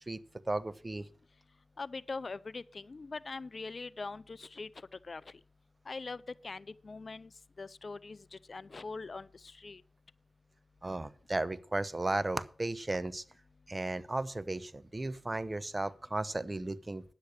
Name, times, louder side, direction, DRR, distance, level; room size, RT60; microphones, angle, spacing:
voice 1, 0.5-1.1 10.8-13.2 13.7-17.0, right 2 dB, 30° right, 0.8 m, -35 dB
voice 2, 1.8-5.4 5.9-7.3 7.6-9.8, left 3 dB, 50° left, 0.5 m, -42 dB
10.0 x 8.5 x 6.5 m
cardioid pair, 55°, 0 cm